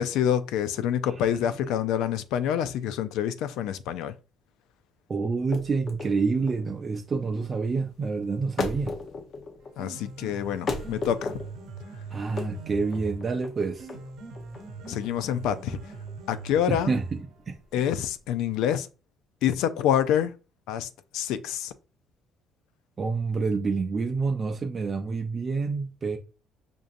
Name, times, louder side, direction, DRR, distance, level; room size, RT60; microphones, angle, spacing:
voice 1, 0.0-4.2 9.8-11.4 14.9-15.8 16.3-17.0 17.7-18.9 19.4-20.4 20.7-21.7, left 9 dB, 85° left, 0.4 m, -27 dB
voice 2, 5.1-9.0 12.1-13.9 16.7-17.6 23.0-26.2, right 4 dB, 35° right, 0.4 m, -28 dB
sound 1, 5.3-18.3, left 3 dB, 50° left, 0.6 m, -37 dB
Piano, 9.6-17.6, right 3 dB, 75° right, 1.0 m, -41 dB
5.2 x 2.4 x 2.5 m
cardioid pair, 105°, 0 cm